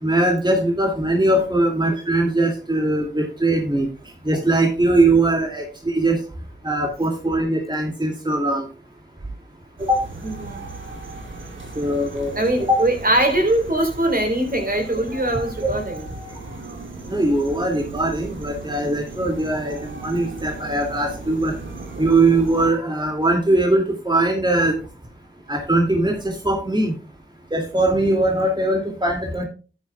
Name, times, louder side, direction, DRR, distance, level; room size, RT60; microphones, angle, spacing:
voice 1, 0.0-3.9 4.3-6.2 6.6-8.7 9.9-10.0 11.8-12.3 12.7-12.8 17.1-21.5 22.0-24.8 25.5-26.9 27.5-29.4, right 2 dB, 25° right, 1 dB, 2.3 m, -20 dB
sound 1, 9.8-22.7, right 3 dB, 80° right, 2.7 m, -37 dB
voice 2, 10.2-10.6 12.4-16.1, right 1 dB, 50° right, 3 dB, 3.6 m, -22 dB
12.5 x 9.7 x 2.3 m, 0.34 s
cardioid pair, 45°, 20 cm